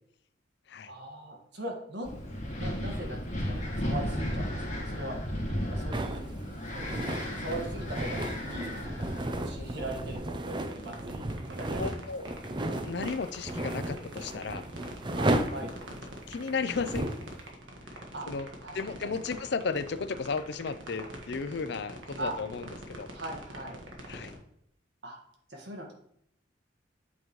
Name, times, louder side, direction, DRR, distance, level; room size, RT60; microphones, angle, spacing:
voice 1, 0.8-2.2 2.6-5.2 5.6-6.2 6.7-8.8 9.4-12.3 15.1-15.7 18.1-18.3 18.6-19.1 22.2-22.3 23.1-23.8 25.0-25.2 25.5-25.9, right 1 dB, 60° right, 2 dB, 1.6 m, -40 dB
Wind, 2.0-10.2, equal, 40° left, 1.8 m, -35 dB
sound 1, 5.9-17.3, right 1 dB, 25° right, 0.5 m, -34 dB
sound 2, 10.7-24.4, right 1 dB, 85° right, 1.5 m, -44 dB
voice 2, 11.8-12.2 12.8-14.6 16.3-17.1 17.9-18.0 18.3-18.5 18.7-23.1 24.1-24.4, left 5 dB, 60° left, 11 dB, 0.5 m, -34 dB
8.6 x 5.2 x 3.1 m, 0.71 s
head